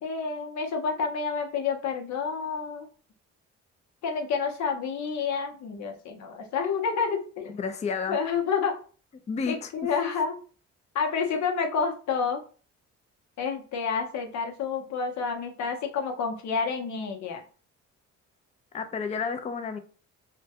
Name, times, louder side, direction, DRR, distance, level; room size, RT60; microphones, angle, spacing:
voice 1, 0.0-2.9 4.0-7.5 8.1-8.8 9.5-10.4 10.9-12.4 13.4-17.4, left 5 dB, 70° left, 3 dB, 0.7 m, -29 dB
voice 2, 7.5-8.2 9.3-10.1 18.7-19.8, left 5 dB, 25° left, 8 dB, 0.3 m, -31 dB
2.2 x 2.1 x 2.7 m, 0.38 s
cardioid pair, 90°, 30 cm